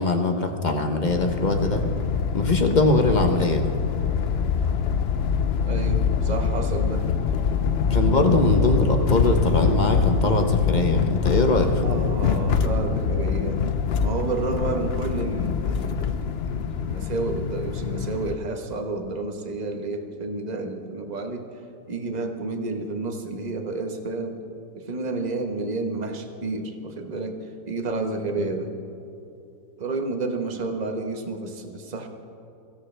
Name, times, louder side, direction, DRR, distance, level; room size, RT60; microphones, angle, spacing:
voice 1, 0.0-1.8 2.3-3.7 7.9-12.0 28.4-28.5, left 2 dB, 35° left, 5 dB, 0.9 m, -22 dB
sound 1, 1.1-18.4, left 6 dB, 80° left, 0.5 m, -24 dB
voice 2, 5.7-7.1 7.7-7.8 11.8-13.6 14.0-21.5 21.9-24.4 24.7-28.8 29.8-32.1, right 3 dB, 25° right, 4 dB, 1.1 m, -30 dB
23.0 x 16.0 x 3.4 m, 2.8 s
omnidirectional pair, 1.9 m